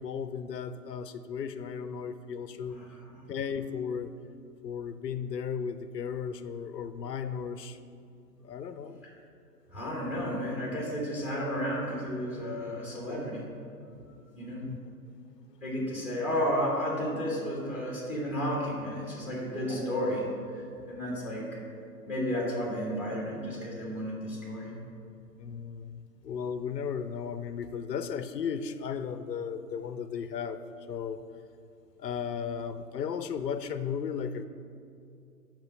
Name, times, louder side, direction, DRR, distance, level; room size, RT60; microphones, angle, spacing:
voice 1, 0.0-2.8 3.3-4.1 4.6-7.8 8.4-9.0 14.6-14.8 25.4-30.6 30.9-31.2 32.0-34.5, left 7 dB, 80° left, 11 dB, 0.5 m, -35 dB
voice 2, 2.7-3.2 9.7-13.5 14.3-14.6 15.6-20.3 20.5-21.4 22.1-24.7, equal, 5° right, -3 dB, 1.0 m, -32 dB
5.3 x 5.1 x 6.0 m, 2.4 s
figure-of-eight pair, 125°, 48 cm